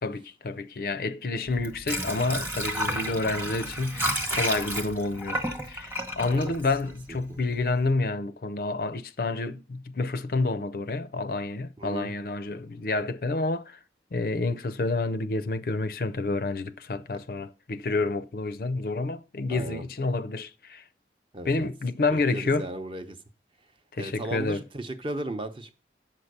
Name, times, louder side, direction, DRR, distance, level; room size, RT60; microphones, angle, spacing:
voice 1, 0.0-5.4 5.7-13.8 14.1-20.8 21.5-22.7 24.0-24.6, left 3 dB, 55° left, 0.5 m, -29 dB
Water / Sink (filling or washing), 1.5-7.3 7.7-7.8, equal, 15° right, 1.1 m, -31 dB
voice 2, 7.1-7.4 11.8-12.1 19.5-19.9 21.3-21.7 22.1-23.2 23.9-25.7, right 1 dB, 30° right, 0.8 m, -36 dB
7.5 x 5.8 x 6.5 m
head